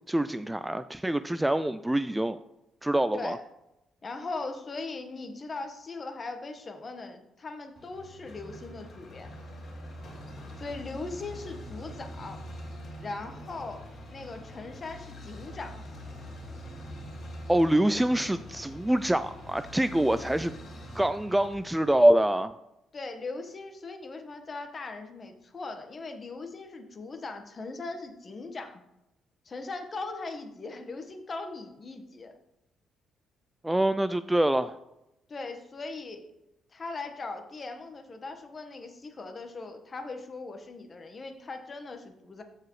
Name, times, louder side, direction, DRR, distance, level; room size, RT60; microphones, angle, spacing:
voice 1, 0.1-2.4 2.8-3.4 17.5-20.5 20.9-22.6 33.6-34.8, right 1 dB, 10° right, 12 dB, 0.3 m, -25 dB
voice 2, 4.0-9.3 10.6-12.4 13.0-15.8 22.9-28.8 29.4-32.3 35.3-36.3 36.7-42.4, left 3 dB, 35° left, 6 dB, 1.2 m, -39 dB
sound 1, 7.8-22.1, equal, 55° left, 2.6 m, -44 dB
14.5 x 4.8 x 3.1 m, 0.88 s
cardioid pair, 90°, 0 cm